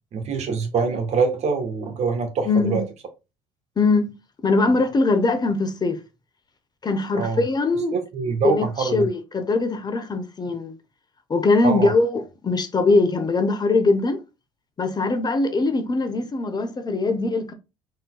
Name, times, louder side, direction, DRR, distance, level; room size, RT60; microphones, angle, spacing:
voice 1, 0.1-2.8 7.1-7.4 7.9-9.1 11.6-11.9, right 5 dB, 50° right, 1.3 m, -24 dB
voice 2, 2.5-2.8 3.8-4.2 4.4-6.0 6.8-8.0 8.4-10.7 11.3-14.2 14.8-17.5, left 3 dB, 30° left, 0.8 m, -21 dB
4.4 x 3.7 x 2.3 m
hypercardioid pair, 70°, 14 cm